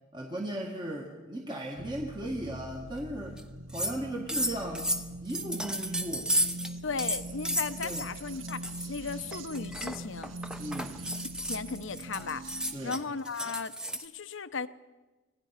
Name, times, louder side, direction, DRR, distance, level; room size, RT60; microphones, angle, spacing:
voice 1, 0.1-3.4 3.7-6.3 7.8-8.1 10.6-11.0 12.7-13.0, right 1 dB, 20° right, 0 dB, 1.6 m, -37 dB
sound 1, 1.8-12.9, right 1 dB, 70° right, 0.9 m, -43 dB
sound 2, 3.4-3.5 3.7-4.0 4.3-6.7 7.0-8.1 8.5-8.9 9.3-14.1, equal, 5° right, 0.9 m, -33 dB
voice 2, 6.8-10.3 11.5-14.7, left 4 dB, 65° left, 12 dB, 0.9 m, -36 dB
sound 3, 6.9-11.8, right 6 dB, 35° right, 2.6 m, -50 dB
25.5 x 17.5 x 5.8 m, 1.2 s
head